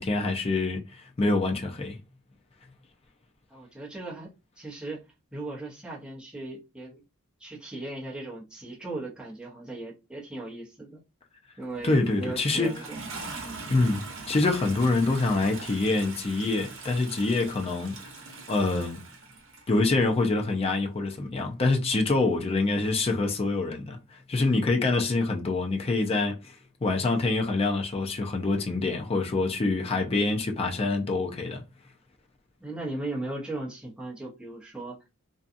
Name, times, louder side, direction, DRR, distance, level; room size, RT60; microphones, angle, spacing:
voice 1, 0.0-2.0 11.8-12.7 13.7-18.1 18.5-19.0 19.7-24.0 24.3-26.5 26.8-31.6, left 3 dB, 30° left, 0.4 m, -26 dB
voice 2, 3.5-4.3 4.6-5.0 5.3-7.0 7.4-11.0 11.6-13.0 32.6-35.0, right 2 dB, 5° right, 0.8 m, -37 dB
Toilet flush, 11.6-20.0 21.1-21.2, right 3 dB, 60° right, 0.8 m, -42 dB
2.6 x 2.3 x 2.5 m
head